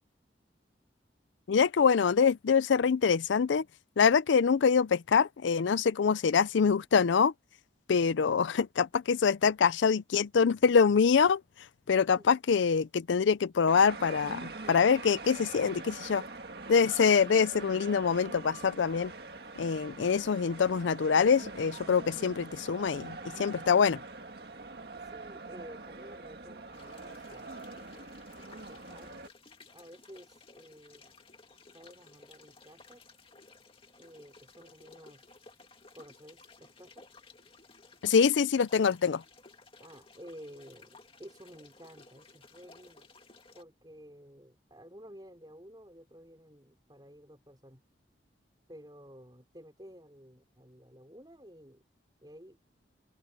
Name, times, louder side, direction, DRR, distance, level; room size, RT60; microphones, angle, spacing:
voice 1, 1.5-3.6 4.0-7.3 7.9-11.4 11.9-16.2 16.7-19.1 19.6-24.0 38.0-39.2, left 6 dB, 85° left, 0.4 m, -25 dB
sound 1, 13.7-29.3, right 3 dB, 55° right, 1.9 m, -44 dB
voice 2, 25.0-27.7 28.5-29.1 29.7-31.2 31.6-33.0 34.0-35.6 35.9-37.1 39.8-43.1 43.5-47.8 48.7-51.8 52.2-52.6, equal, 20° right, 4.8 m, -52 dB
sound 2, 26.7-43.6, left 3 dB, 30° left, 2.4 m, -57 dB
head